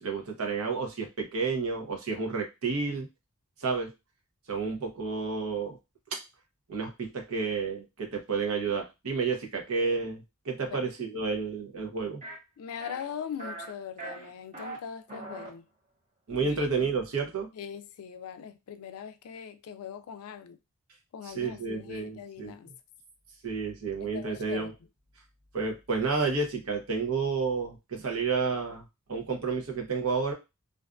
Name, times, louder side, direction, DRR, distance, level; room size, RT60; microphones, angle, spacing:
voice 1, 0.0-3.1 3.6-3.9 4.5-5.8 6.1-6.2 6.7-12.2 16.3-17.5 21.2-22.5 23.4-24.7 25.5-28.8 29.1-30.3, right 4 dB, 85° right, 0.8 m, -30 dB
sound 1, 12.2-12.4 12.8-13.1 13.4-13.7 14.0-14.8 15.1-15.5, right 2 dB, 35° right, 0.9 m, -40 dB
voice 2, 12.6-15.7 16.4-16.7 17.5-20.6 21.1-22.7 24.0-24.7, left 7 dB, 80° left, 0.3 m, -41 dB
2.5 x 2.3 x 2.4 m
head